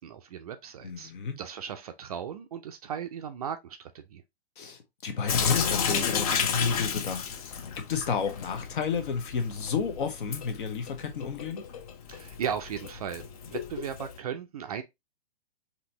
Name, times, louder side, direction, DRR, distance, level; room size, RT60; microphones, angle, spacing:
voice 1, 0.0-1.1 1.4-4.2 12.1-14.8, right 8 dB, 40° right, 0.4 m, -36 dB
voice 2, 0.8-1.4 4.6-7.3 7.8-11.6, left 5 dB, 55° left, 1.0 m, -31 dB
Sink (filling or washing) / Drip, 5.3-14.2, left 6 dB, 35° left, 0.6 m, -32 dB
4.1 x 2.8 x 2.7 m
figure-of-eight pair, 125°, 31 cm